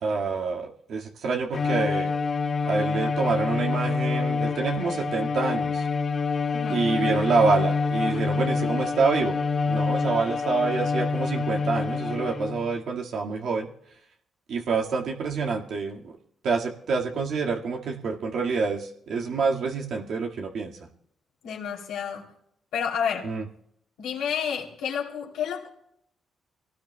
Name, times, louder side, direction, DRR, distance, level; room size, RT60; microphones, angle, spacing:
voice 1, 0.0-2.1 2.6-5.9 6.7-9.4 9.7-13.7 14.5-16.1 16.4-20.9 23.2-23.4, right 4 dB, 75° right, 0 dB, 1.8 m, -27 dB
Bowed string instrument, 1.5-12.7, left 4 dB, 50° left, 2.0 m, -27 dB
voice 2, 21.4-22.3 22.7-23.3 24.0-25.7, left 7 dB, 90° left, -2 dB, 2.9 m, -30 dB
25.0 x 18.0 x 2.2 m, 0.70 s
cardioid pair, 75°, 0 cm